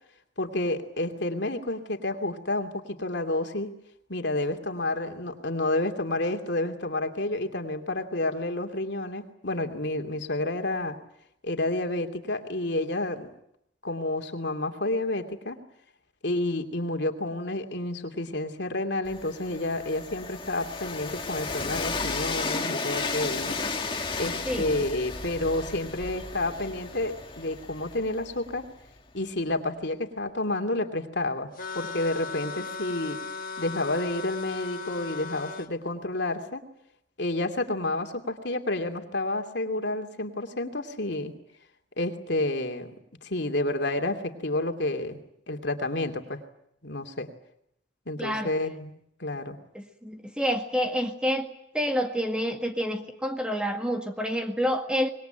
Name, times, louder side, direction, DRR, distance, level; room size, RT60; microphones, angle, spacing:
voice 1, 0.4-3.7 4.1-11.0 11.4-13.3 13.8-15.6 16.2-23.6 24.2-28.7 29.1-31.5 31.7-33.2 33.6-36.6 37.2-41.3 42.0-42.9 43.2-45.2 45.5-46.4 46.8-47.3 48.1-49.6, left 2 dB, 65° left, 5 dB, 2.8 m, -30 dB
Train, 19.0-28.9, left 4 dB, 25° left, 2.1 m, -34 dB
voice 2, 24.5-24.9 48.2-48.5 49.7-51.5 51.7-55.1, equal, 5° right, 4 dB, 1.9 m, -28 dB
sound 1, 31.6-35.7, left 4 dB, 45° left, 1.7 m, -37 dB
26.0 x 21.5 x 9.1 m, 0.75 s
head